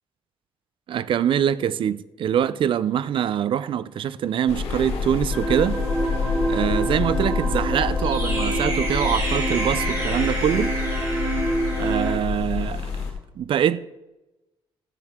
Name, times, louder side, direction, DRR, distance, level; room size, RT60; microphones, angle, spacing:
voice 1, 0.9-5.8 6.5-10.7 11.7-12.9 13.4-13.8, right 9 dB, 60° right, 0.4 m, -24 dB
sound 1, 4.5-13.1, left 5 dB, 85° left, 2.4 m, -27 dB
sound 2, 5.3-12.1, right 2 dB, 30° right, 3.6 m, -27 dB
14.0 x 7.6 x 3.6 m
cardioid pair, 140°, 10 cm